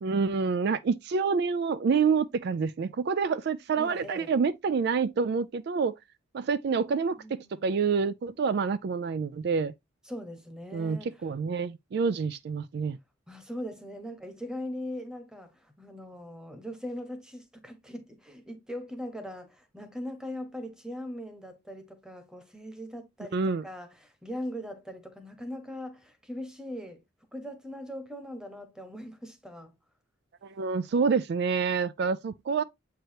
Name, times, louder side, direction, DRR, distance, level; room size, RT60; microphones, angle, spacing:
voice 1, 0.0-6.0 6.3-9.7 10.7-13.0 23.3-23.6 30.4-32.6, right 5 dB, 55° right, 0.3 m, -27 dB
voice 2, 3.7-4.3 7.2-7.8 10.0-11.2 13.3-27.0 27.3-29.8, equal, 5° right, 1.2 m, -40 dB
7.8 x 4.7 x 2.8 m
head